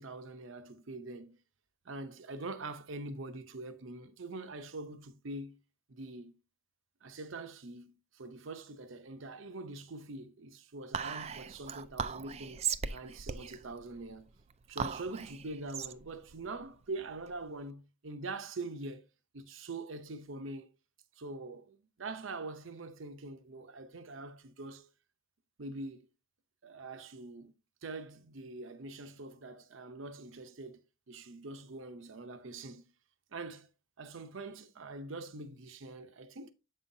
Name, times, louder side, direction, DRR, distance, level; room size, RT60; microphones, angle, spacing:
voice 1, 0.0-1.4 1.8-5.6 5.9-6.3 7.0-12.6 12.9-14.3 14.7-19.1 19.3-20.7 21.2-24.9 25.6-26.1 26.6-27.5 27.8-32.9 33.3-33.7 34.0-36.5, right 2 dB, 70° right, 0.7 m, -44 dB
Whispering, 10.9-17.6, right 7 dB, 30° right, 0.3 m, -39 dB
8.0 x 5.6 x 2.7 m
head